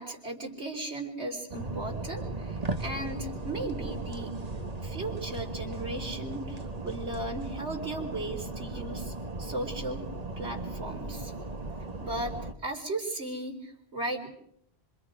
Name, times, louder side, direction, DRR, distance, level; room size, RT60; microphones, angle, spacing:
voice 1, 0.0-4.3 4.8-9.1 9.4-10.0 10.4-11.3 12.0-14.3, right 2 dB, 85° right, 1 dB, 4.4 m, -36 dB
sound 1, 1.5-12.5, right 2 dB, 35° right, 1.7 m, -37 dB
27.0 x 26.0 x 5.1 m, 0.70 s
omnidirectional pair, 1.1 m